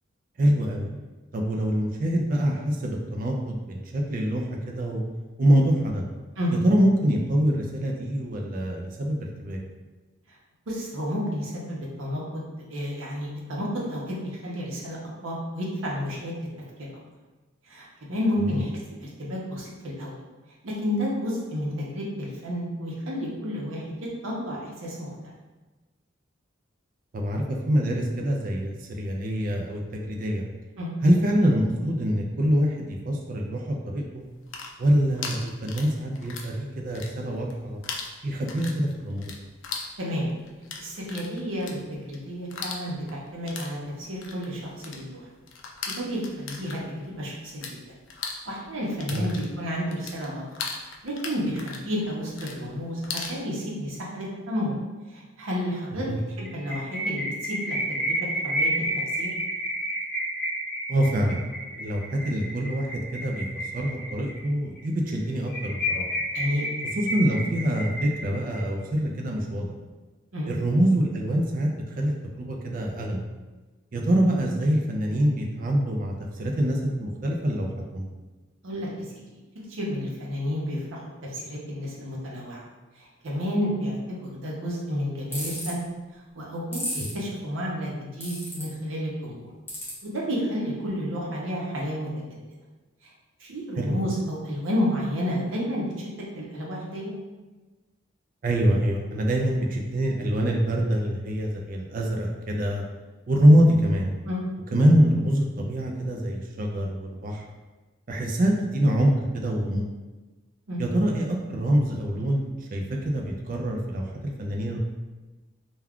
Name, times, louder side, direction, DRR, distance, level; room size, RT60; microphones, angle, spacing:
voice 1, 0.4-0.9 1.3-5.0 5.4-6.1 6.5-9.6 27.1-30.5 31.0-34.2 34.8-37.8 38.2-39.3 49.1-49.2 56.1-56.2 60.9-61.4 61.8-66.1 66.9-69.7 70.5-73.2 73.9-78.1 93.8-94.0 98.4-102.8 103.3-104.1 104.7-107.4 108.1-109.8 110.8-114.8, equal, 45° right, 1 dB, 0.4 m, -25 dB
voice 2, 10.7-15.0 15.2-16.3 16.8-16.9 17.7-18.7 19.0-20.2 20.6-25.3 30.8-30.9 40.0-40.3 40.8-45.2 46.0-47.8 48.5-50.4 51.0-54.8 55.1-58.7 59.2-59.3 66.3-66.7 70.3-70.5 78.6-79.1 79.7-81.0 81.3-82.6 83.0-85.8 86.3-89.5 90.0-92.4 93.4-96.1 96.3-97.1 104.2-104.4 110.7-110.8, equal, 85° right, -4 dB, 0.7 m, -31 dB
sound 1, 34.3-36.6 36.8-37.5 37.8-47.7 48.0-53.4, left 5 dB, 70° left, 0.4 m, -38 dB
sound 2, 56.4-64.4 64.8-64.9 65.1-65.2 65.5-68.6, equal, 45° left, 0.9 m, -30 dB
sound 3, 85.3-85.7 86.7-87.1 88.2-88.6 89.7-89.9, left 1 dB, 10° left, 0.6 m, -32 dB
2.3 x 2.2 x 3.5 m, 1.2 s
head